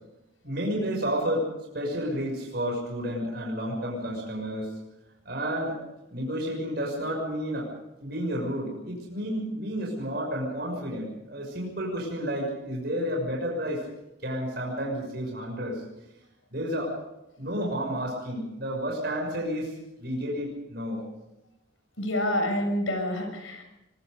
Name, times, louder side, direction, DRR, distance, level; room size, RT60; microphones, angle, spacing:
voice 1, 0.4-1.5 1.7-4.7 5.2-5.8 6.1-7.7 8.0-13.8 14.2-15.8 16.5-17.0 17.4-19.7 20.0-21.0, equal, 55° right, 0 dB, 6.3 m, -31 dB
voice 2, 22.0-23.6, left 1 dB, 90° left, 5 dB, 6.8 m, -27 dB
24.0 x 21.5 x 5.2 m, 0.94 s
head